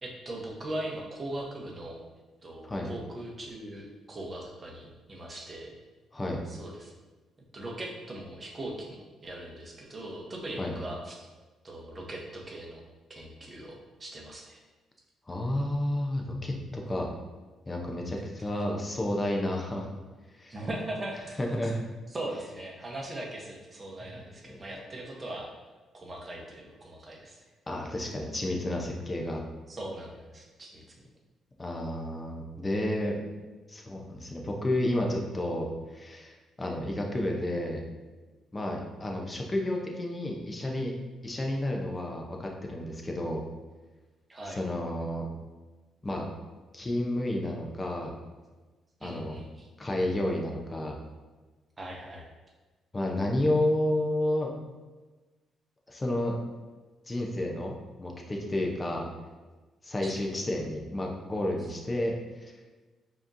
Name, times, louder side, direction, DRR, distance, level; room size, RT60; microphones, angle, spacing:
voice 1, 0.0-2.0 2.4-5.7 6.5-6.9 7.5-9.0 9.2-11.3 11.6-12.8 13.1-14.6 20.5-21.4 22.1-25.5 25.9-27.4 29.7-30.8 44.3-44.6 49.0-49.7 51.8-52.3 60.0-60.2, right 1 dB, 30° right, -1 dB, 0.9 m, -39 dB
voice 2, 15.3-17.1 17.7-19.9 20.3-20.6 21.4-21.8 24.0-24.8 27.7-29.4 31.6-33.2 33.7-37.8 38.5-41.0 41.2-43.4 44.4-45.3 46.0-46.3 46.7-48.1 49.0-49.4 49.8-51.0 52.9-54.5 55.9-56.4 57.1-59.1 59.8-62.2 62.4-62.5, left 1 dB, 25° left, 0 dB, 0.7 m, -31 dB
4.9 x 2.9 x 2.6 m, 1.2 s
cardioid pair, 90°, 0 cm